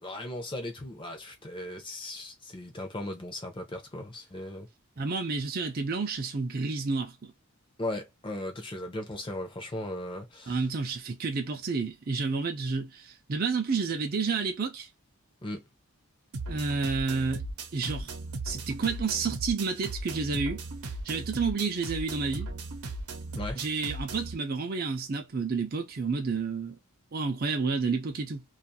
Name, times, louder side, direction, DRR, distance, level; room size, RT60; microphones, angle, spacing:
voice 1, 0.0-4.7 7.8-10.6 15.4-15.6 23.4-23.6, left 1 dB, 20° left, 0.6 m, -37 dB
voice 2, 5.0-7.3 10.5-14.9 16.5-17.5 17.7-18.1 18.4-20.6 21.0-22.5 23.5-26.8 27.1-28.4, right 4 dB, 40° right, 0.5 m, -30 dB
sound 1, 16.3-24.3, right 2 dB, 80° right, 0.7 m, -37 dB
2.5 x 2.4 x 2.7 m
head